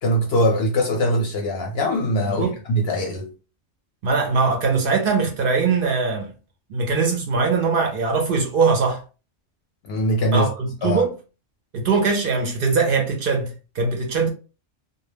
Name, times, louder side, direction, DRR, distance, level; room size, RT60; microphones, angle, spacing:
voice 1, 0.0-3.3 9.8-10.5 10.8-11.1, equal, 65° left, 0.7 m, -22 dB
voice 2, 2.3-2.6 4.0-6.3 6.7-9.0 10.3-11.1 11.7-14.3, right 4 dB, 60° right, 0.6 m, -21 dB
2.1 x 2.1 x 3.2 m
omnidirectional pair, 1.2 m